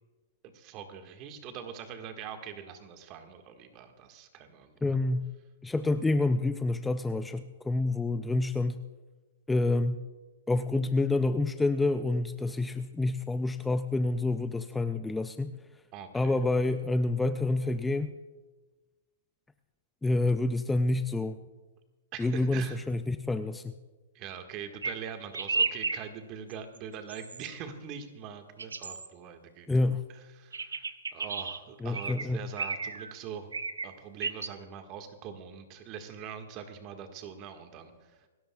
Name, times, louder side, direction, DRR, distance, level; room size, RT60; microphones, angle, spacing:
voice 1, 0.4-4.8 15.9-16.4 22.1-22.8 24.1-29.7 30.4-30.8 31.1-33.5 33.8-37.9, right 7 dB, 35° right, 6 dB, 1.7 m, -43 dB
voice 2, 4.8-5.3 5.6-8.8 9.5-10.0 10.5-15.5 16.1-18.1 20.0-21.4 22.2-23.7 29.7-30.0 31.8-32.4, left 2 dB, 5° left, 10 dB, 0.5 m, -28 dB
sound 1, 24.8-25.0 25.3-26.0 26.5-26.8 27.1-27.5 28.6-29.1 30.5-31.6 31.9-32.3 32.6-33.1 33.5-33.9 34.2-34.5, right 4 dB, 85° right, 0.8 m, -33 dB
27.5 x 13.0 x 2.4 m, 1.2 s
hypercardioid pair, 120°, 0 cm